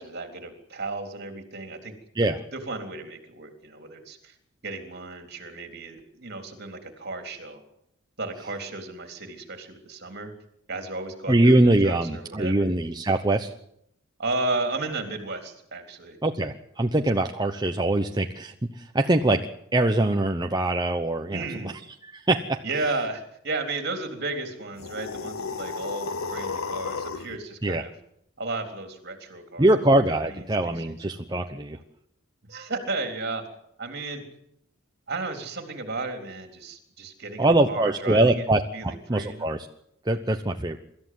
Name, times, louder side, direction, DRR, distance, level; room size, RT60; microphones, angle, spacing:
voice 1, 0.0-4.4 4.6-7.6 8.2-10.3 10.7-12.7 14.2-16.2 21.3-21.8 22.6-27.9 28.4-29.7 30.3-30.4 30.8-31.0 32.4-33.4 33.8-34.2 35.1-38.5 38.7-39.5, right 3 dB, 50° right, 5 dB, 3.7 m, -34 dB
voice 2, 11.3-13.5 16.2-19.4 19.7-21.7 22.0-22.6 27.6-27.8 29.6-31.8 37.4-39.7 40.1-40.8, right 1 dB, 20° right, 4 dB, 0.9 m, -23 dB
sound 1, 24.7-27.4, left 4 dB, 90° left, 1.1 m, -33 dB
24.5 x 13.5 x 9.5 m, 0.75 s
head